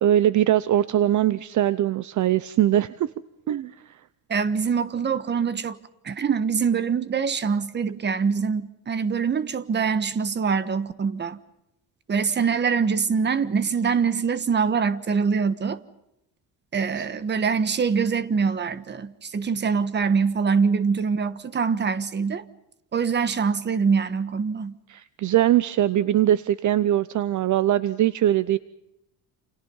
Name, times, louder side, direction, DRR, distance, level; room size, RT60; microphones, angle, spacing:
voice 1, 0.0-3.1 3.5-3.7 17.0-17.1 24.9-28.6, right 12 dB, 50° right, 0.8 m, -21 dB
voice 2, 4.3-5.8 6.0-11.4 12.1-15.8 16.7-22.4 22.9-24.7, right 5 dB, 25° right, 1.4 m, -24 dB
29.0 x 29.0 x 5.6 m
cardioid pair, 150°, 39 cm